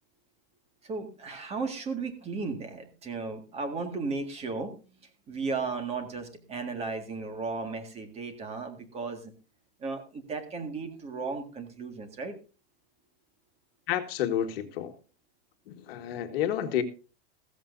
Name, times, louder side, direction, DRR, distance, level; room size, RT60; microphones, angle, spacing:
voice 1, 0.8-4.7 5.3-9.3 9.8-12.3, right 4 dB, 20° right, 1.9 m, -35 dB
voice 2, 13.9-15.0 15.7-16.8, left 10 dB, 65° left, 1.8 m, -30 dB
15.5 x 14.5 x 2.6 m
supercardioid pair, 155°, 32 cm